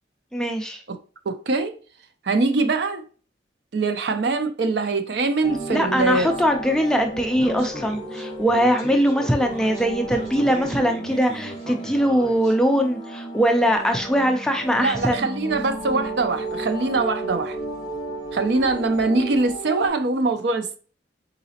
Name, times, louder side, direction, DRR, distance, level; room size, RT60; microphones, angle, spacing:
voice 1, 0.3-0.8 5.7-15.3, equal, 5° left, 0.4 m, -21 dB
voice 2, 1.3-1.7 2.2-3.0 3.7-6.3 14.8-17.6 18.3-20.8, right 3 dB, 60° right, 0.5 m, -23 dB
sound 1, 5.4-19.9, right 2 dB, 20° left, 0.9 m, -34 dB
Speech, 7.3-12.5, equal, 35° right, 1.4 m, -38 dB
4.0 x 3.9 x 2.8 m
head